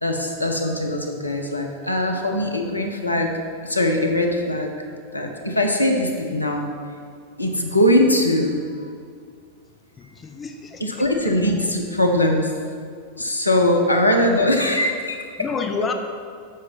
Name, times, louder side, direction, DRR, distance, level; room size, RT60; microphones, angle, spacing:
voice 1, 0.0-3.3 3.6-4.7 5.1-6.7 7.4-8.9 10.8-12.5 13.2-15.2, left 1 dB, 85° left, 2 dB, 1.0 m, -21 dB
voice 2, 10.0-11.3 13.8-13.9 15.4-15.9, left 5 dB, 20° left, 4 dB, 0.7 m, -30 dB
9.3 x 6.5 x 4.1 m, 2.2 s
figure-of-eight pair, 90°, 0 cm